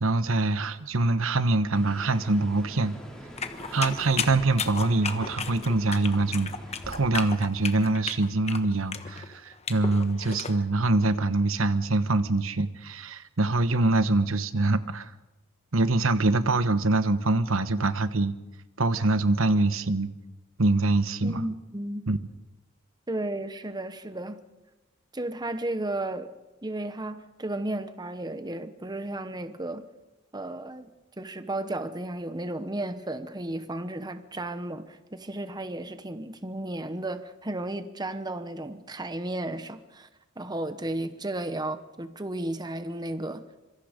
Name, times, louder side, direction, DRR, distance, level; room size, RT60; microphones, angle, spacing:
voice 1, 0.0-2.9 3.7-6.5 6.9-15.1 15.7-18.3 18.8-20.1 20.6-21.4 22.1-22.2, right 2 dB, 70° right, 1.1 m, -24 dB
sound 1, 1.7-7.1, equal, 5° left, 4.3 m, -44 dB
sound 2, 3.4-10.5, left 6 dB, 30° left, 1.3 m, -34 dB
voice 2, 21.2-22.1 23.1-24.4 25.1-26.3 26.6-29.9 30.3-30.9 31.2-40.1 40.4-43.4, right 1 dB, 20° right, 1.0 m, -33 dB
26.0 x 24.0 x 5.2 m
head